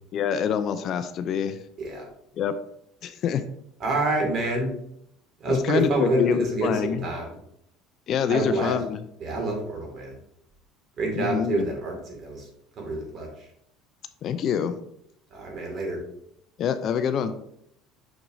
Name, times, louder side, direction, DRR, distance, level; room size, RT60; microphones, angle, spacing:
voice 1, 0.1-1.6 2.3-2.5 3.0-3.4 5.5-7.1 8.1-9.0 11.1-11.7 14.2-14.8 16.6-17.3, left 8 dB, 45° left, 11 dB, 0.4 m, -26 dB
voice 2, 3.8-4.7 5.4-7.3 8.3-8.7 9.2-10.1 11.0-12.5 12.8-13.3 15.3-16.0, right 2 dB, 40° right, 1 dB, 2.1 m, -27 dB
6.1 x 6.0 x 2.7 m, 0.73 s
cardioid pair, 125°, 0 cm